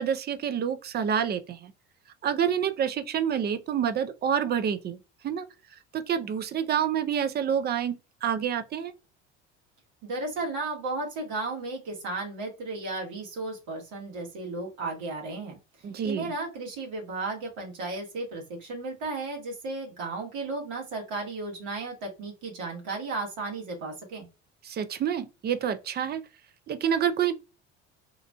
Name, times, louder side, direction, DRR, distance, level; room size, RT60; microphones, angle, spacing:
voice 1, 0.0-1.7 2.2-5.0 5.2-5.5 5.9-8.0 8.2-8.9 15.8-16.3 24.6-26.2 26.7-27.3, right 8 dB, 30° right, 0.4 m, -28 dB
voice 2, 10.0-15.6 16.0-24.3, right 3 dB, 65° right, 1.5 m, -34 dB
3.1 x 2.4 x 2.2 m
hypercardioid pair, 70°, 34 cm